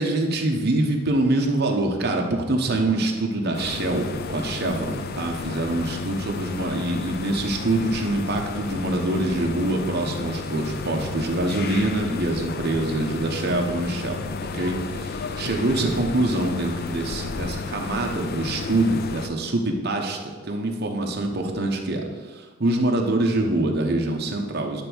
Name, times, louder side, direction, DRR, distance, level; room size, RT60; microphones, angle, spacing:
voice 1, 0.0-14.2 14.5-24.8, right 2 dB, 55° right, 2 dB, 1.0 m, -25 dB
sound 1, 3.5-19.3, left 4 dB, 50° left, 0.5 m, -32 dB
9.9 x 3.5 x 6.2 m, 1.3 s
head